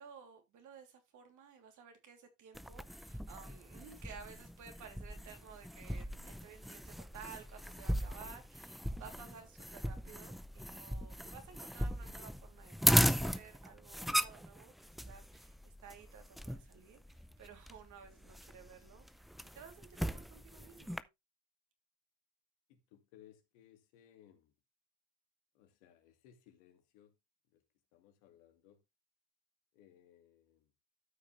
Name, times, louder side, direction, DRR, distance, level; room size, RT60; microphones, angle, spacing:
voice 1, 0.0-21.1, right 6 dB, 60° right, 3.3 m, -55 dB
sound 1, 2.5-21.0, equal, ahead, 0.5 m, -37 dB
voice 2, 22.7-24.5 25.5-27.1 27.5-27.6 27.9-28.8 29.7-30.7, left 11 dB, 85° left, 2.5 m, -63 dB
13.0 x 5.8 x 3.3 m
supercardioid pair, 85°, 34 cm